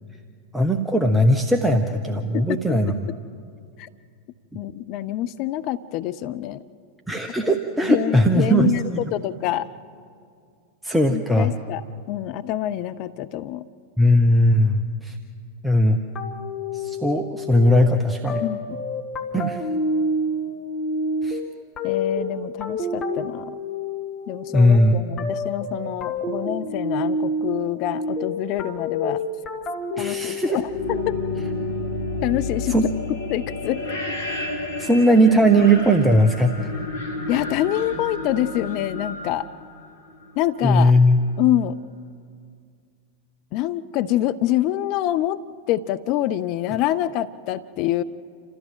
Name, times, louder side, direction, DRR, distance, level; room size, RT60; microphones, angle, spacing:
voice 1, 0.5-3.1 7.1-9.0 10.8-11.5 14.0-15.2 15.6-16.0 16.7-18.4 19.3-19.6 21.2-21.4 24.5-25.0 30.0-30.6 32.7-32.8 34.8-36.7 40.6-41.2, equal, 5° right, 4 dB, 1.0 m, -18 dB
voice 2, 2.3-2.8 3.8-3.9 4.5-6.6 7.4-7.5 7.8-9.6 11.1-13.7 18.4-18.8 21.8-23.6 24.3-29.2 29.9-31.2 32.2-32.8 33.3-33.8 37.3-39.5 40.4-40.9 41.4-41.8 43.5-45.4 45.7-48.0, left 13 dB, 40° left, 12 dB, 0.6 m, -26 dB
sound 1, 16.1-31.5, left 1 dB, 25° left, 1.9 m, -28 dB
sound 2, 30.5-40.4, left 2 dB, 75° left, 3.2 m, -31 dB
28.0 x 14.0 x 7.6 m, 2.3 s
figure-of-eight pair, 90°, 0 cm